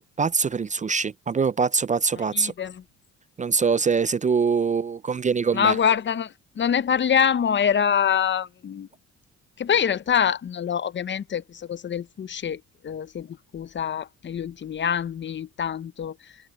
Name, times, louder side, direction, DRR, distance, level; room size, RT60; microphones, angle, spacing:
voice 1, 0.0-2.5 3.4-5.8, right 5 dB, 25° right, 0.4 m, -23 dB
voice 2, 2.3-2.8 5.5-8.9 9.6-16.2, left 8 dB, 40° left, 0.7 m, -25 dB
cardioid pair, 90°, 30 cm